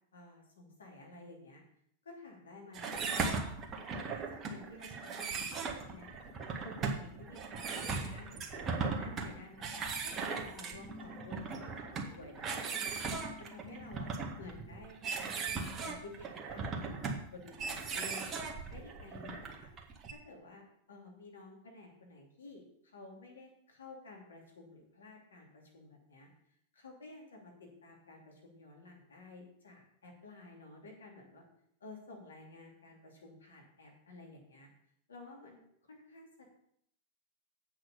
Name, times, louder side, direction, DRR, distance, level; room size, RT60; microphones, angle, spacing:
voice 1, 0.1-1.6 2.0-3.4 4.1-6.3 6.6-14.1 14.4-19.7 20.1-26.3 26.7-31.4 31.8-34.7 35.1-35.6 35.9-36.5, left 2 dB, 80° left, 0 dB, 2.8 m, -53 dB
sound 1, 2.7-20.1, right 4 dB, 30° right, 1.7 m, -38 dB
8.3 x 6.3 x 6.7 m, 0.70 s
hypercardioid pair, 95°, 0 cm